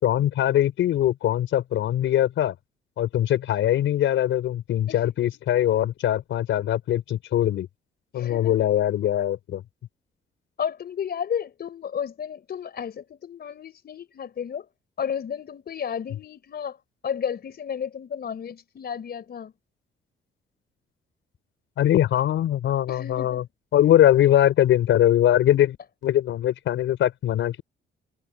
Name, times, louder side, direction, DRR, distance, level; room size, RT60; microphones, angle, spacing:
voice 1, 0.0-2.5 3.0-7.7 8.1-9.6 21.8-23.4 23.7-25.8 26.0-27.6, left 12 dB, 75° left, 4.2 m, -21 dB
voice 2, 4.9-5.3 8.1-8.6 10.6-14.7 15.0-16.8 17.0-19.5 22.9-23.4, left 8 dB, 55° left, 4.3 m, -32 dB
cardioid pair, 90°, 20 cm